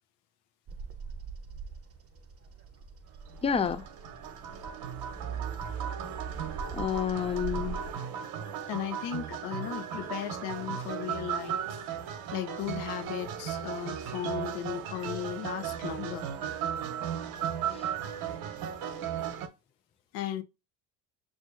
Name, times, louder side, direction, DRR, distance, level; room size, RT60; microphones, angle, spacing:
Bird vocalization bird call bird song, 0.7-7.9, right 5 dB, 35° right, 0.8 m, -43 dB
sound 1, 3.3-19.5, right 8 dB, 65° right, 0.9 m, -36 dB
voice 1, 3.4-3.9 6.7-7.8 17.7-17.8, left 7 dB, 15° left, 0.4 m, -29 dB
sound 2, 4.9-7.7, right 8 dB, ahead, 0.9 m, -40 dB
voice 2, 8.7-11.6 12.3-16.3 20.1-20.4, left 12 dB, 75° left, 0.8 m, -36 dB
6.2 x 2.5 x 2.5 m
supercardioid pair, 85°, 40 cm